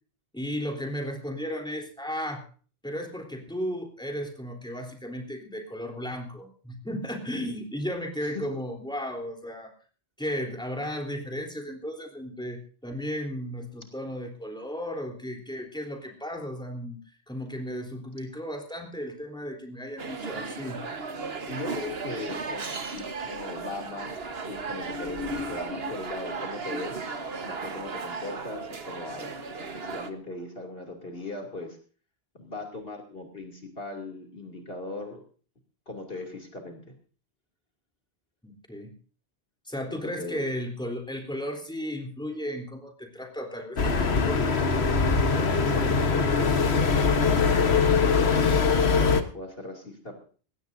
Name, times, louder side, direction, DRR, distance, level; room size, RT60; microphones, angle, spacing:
voice 1, 0.3-2.4 2.8-9.7 10.2-20.8 38.4-38.9 39.7-44.5, equal, 5° left, 3 dB, 3.6 m, -35 dB
sound 1, 20.0-30.1, right 3 dB, 70° right, 1.6 m, -35 dB
voice 2, 21.5-27.0 27.4-31.8 32.3-35.2 35.9-36.8 39.9-40.5 45.0-47.2 47.6-50.2, left 2 dB, 65° left, 3 dB, 3.1 m, -38 dB
sound 2, 43.8-49.2, left 5 dB, 80° left, 1.6 m, -22 dB
20.5 x 17.5 x 2.7 m, 0.39 s
omnidirectional pair, 1.1 m